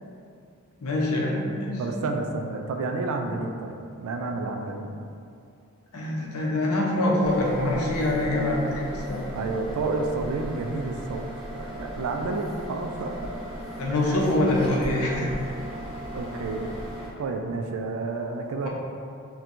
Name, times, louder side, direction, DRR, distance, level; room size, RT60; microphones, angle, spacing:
voice 1, 0.8-1.8 5.9-9.2 13.8-15.4, left 1 dB, 75° left, -3 dB, 0.6 m, -24 dB
voice 2, 1.8-4.9 9.3-11.2 11.5-13.3 14.0-14.3 15.4-15.6 16.1-16.7 17.2-18.7, right 3 dB, 70° right, 3 dB, 0.3 m, -30 dB
sound 1, 7.2-17.1, right 1 dB, 25° left, 0.6 m, -37 dB
4.3 x 2.2 x 2.5 m, 2.5 s
head